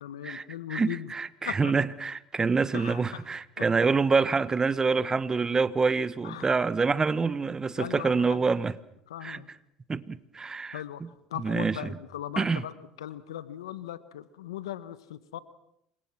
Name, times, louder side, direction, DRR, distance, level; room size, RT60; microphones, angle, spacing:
voice 1, 0.0-1.1 1.4-1.7 2.7-3.2 6.2-6.5 7.7-8.5 9.1-9.5 10.7-11.0 11.3-12.7 13.0-15.4, left 12 dB, 90° left, 15 dB, 1.2 m, -38 dB
voice 2, 0.7-8.8 9.2-9.4 9.9-11.1 11.3-11.8 12.4-12.6, right 4 dB, 25° right, 16 dB, 1.4 m, -26 dB
28.5 x 25.0 x 6.1 m, 0.77 s
hypercardioid pair, 80°, 3 cm